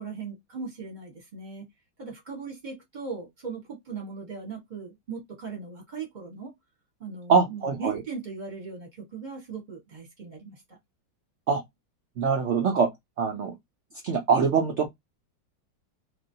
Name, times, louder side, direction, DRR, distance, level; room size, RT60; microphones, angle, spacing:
voice 1, 0.0-1.7 2.0-6.5 7.0-10.8, right 5 dB, 30° right, 1.0 m, -38 dB
voice 2, 7.3-8.0 11.5-11.6 12.2-12.9 13.2-13.5 14.0-14.9, right 5 dB, 75° right, 0.6 m, -23 dB
3.1 x 2.6 x 2.6 m
omnidirectional pair, 2.0 m